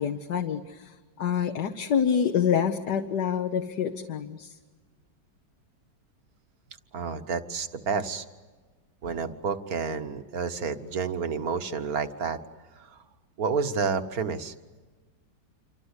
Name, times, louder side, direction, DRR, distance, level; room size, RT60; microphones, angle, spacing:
voice 1, 0.0-4.5, left 8 dB, 65° left, 5 dB, 1.6 m, -27 dB
voice 2, 6.9-8.2 9.0-12.4 12.8-13.0 13.4-14.5, right 5 dB, 55° right, 9 dB, 1.7 m, -30 dB
28.0 x 25.0 x 8.2 m, 1.4 s
omnidirectional pair, 2.0 m